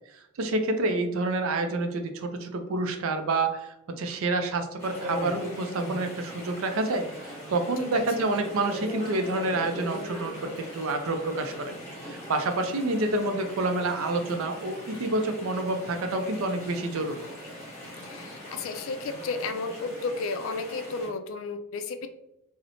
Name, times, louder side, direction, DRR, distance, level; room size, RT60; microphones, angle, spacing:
voice 1, 0.4-11.7 12.0-17.2, right 2 dB, 75° right, 6 dB, 0.4 m, -28 dB
Chatter / Stream, 4.8-21.1, equal, 15° left, 0.9 m, -40 dB
voice 2, 7.9-8.2 18.0-22.1, left 3 dB, 65° left, 8 dB, 0.3 m, -33 dB
2.8 x 2.0 x 2.5 m, 0.85 s
head